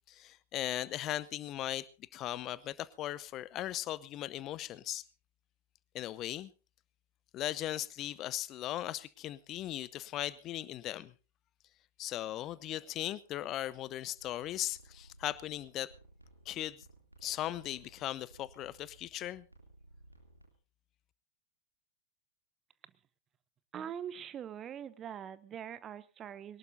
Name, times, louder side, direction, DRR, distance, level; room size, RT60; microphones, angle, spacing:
voice 1, 0.1-1.9 2.1-5.0 5.9-6.5 7.3-11.1 12.0-15.9 16.5-16.8 17.2-19.5, left 13 dB, 35° left, 0.7 m, -38 dB
sound 1, 14.2-20.5, right 2 dB, 85° right, 2.8 m, -59 dB
voice 2, 23.7-26.6, right 9 dB, 25° right, 0.9 m, -43 dB
22.5 x 18.5 x 2.7 m
figure-of-eight pair, 90°, 0 cm